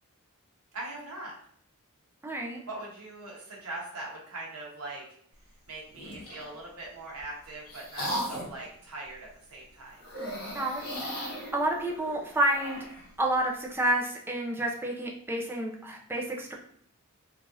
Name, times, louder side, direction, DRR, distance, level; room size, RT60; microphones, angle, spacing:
voice 1, 0.7-1.3 2.7-5.2 5.7-10.0, right 2 dB, 80° right, -3 dB, 0.9 m, -41 dB
voice 2, 2.2-2.6 10.5-12.8 13.2-16.5, right 1 dB, 10° right, -1 dB, 0.4 m, -30 dB
sound 1, 5.9-6.5 7.2-8.6 10.0-13.1, equal, 85° left, 1.1 m, -37 dB
3.1 x 2.4 x 2.6 m, 0.64 s
head